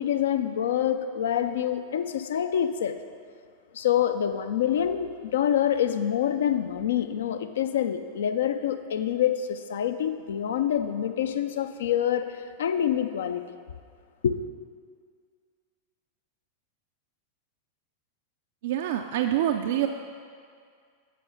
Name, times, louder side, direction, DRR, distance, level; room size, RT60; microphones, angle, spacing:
voice 1, 0.0-3.0 3.7-13.6 14.2-14.4, left 9 dB, 60° left, 9 dB, 0.4 m, -26 dB
voice 2, 18.6-19.9, right 11 dB, 55° right, 5 dB, 0.4 m, -26 dB
9.2 x 6.1 x 4.8 m, 2.1 s
figure-of-eight pair, 90°, 0 cm